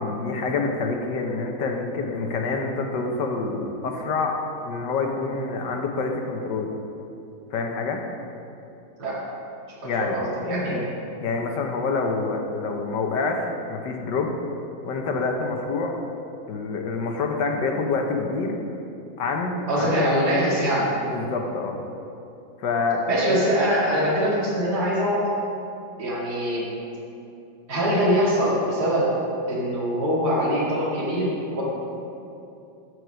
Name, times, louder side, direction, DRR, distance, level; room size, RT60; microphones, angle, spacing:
voice 1, 0.0-6.7 7.5-8.0 9.8-10.2 11.2-14.3 14.8-15.9 16.5-18.6 19.2-20.2 21.0-21.8 22.6-23.0 23.3-23.4, left 4 dB, 85° left, 2 dB, 1.7 m, -27 dB
voice 2, 9.8-10.9 19.7-20.9 23.1-25.3 26.0-26.6 27.7-29.1 29.5-31.6, equal, 65° right, -7 dB, 2.6 m, -23 dB
14.0 x 4.9 x 6.2 m, 2.7 s
omnidirectional pair, 1.8 m